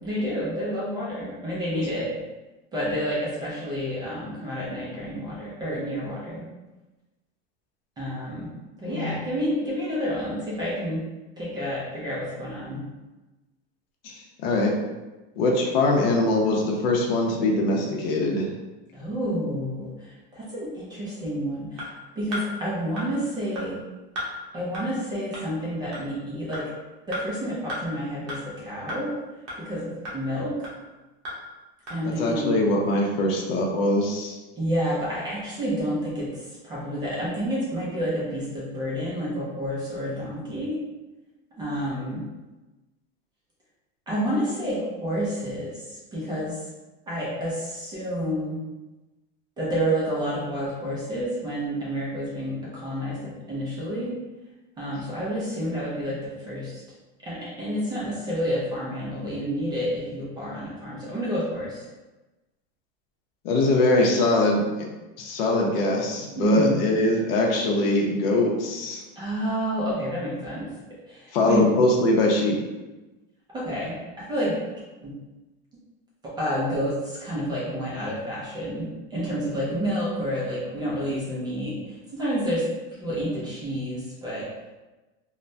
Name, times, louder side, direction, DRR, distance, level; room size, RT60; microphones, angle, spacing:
voice 1, 0.0-2.1 2.7-6.4 8.0-8.5 8.8-11.0 11.4-12.8 18.9-23.8 24.5-26.7 27.1-29.1 29.6-30.6 31.9-32.5 34.6-40.8 41.6-42.2 44.1-46.6 47.1-48.6 49.6-54.1 54.8-56.8 57.2-61.8 66.4-66.8 69.2-70.7 71.1-71.7 73.5-74.0 74.3-74.5 75.0-75.1 76.2-82.6 82.9-84.5, equal, 15° right, -7 dB, 0.4 m, -29 dB
voice 2, 8.8-9.2 14.0-14.7 15.4-18.5 32.0-34.4 63.4-64.8 65.2-69.0 71.3-72.6, left 2 dB, 65° left, -1 dB, 0.6 m, -22 dB
sound 1, 21.8-21.9 22.3-22.4 23.0-23.1 23.6-23.7 24.2-24.3 24.7-24.8 25.3-25.4 25.9-26.0 26.5-26.6 27.1-27.2 27.7-27.8 28.3-28.4 28.9-29.0 29.5-29.6 30.0-30.2 30.6-30.7 31.2-31.3 31.9-32.0, equal, 40° right, 0.9 m, -33 dB
3.1 x 2.1 x 2.6 m, 1.1 s
supercardioid pair, 160°, 32 cm